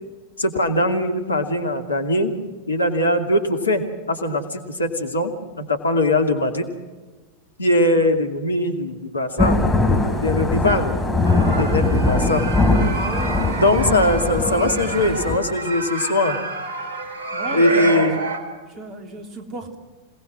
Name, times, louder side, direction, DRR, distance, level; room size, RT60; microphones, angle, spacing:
voice 1, 0.4-2.4 2.7-6.7 7.6-9.6 10.2-11.0 11.6-12.4 13.6-16.4 17.5-18.2, left 1 dB, 75° left, 5 dB, 2.4 m, -21 dB
Thunder / Rain, 9.4-15.4, left 2 dB, 5° left, 3.8 m, -21 dB
sound 1, 11.2-18.4, right 3 dB, 55° right, 4.0 m, -28 dB
voice 2, 12.9-14.0 17.3-18.2 18.6-19.8, right 2 dB, 30° right, 4 dB, 3.4 m, -35 dB
27.0 x 18.5 x 6.3 m, 1.3 s
figure-of-eight pair, 90°, 0 cm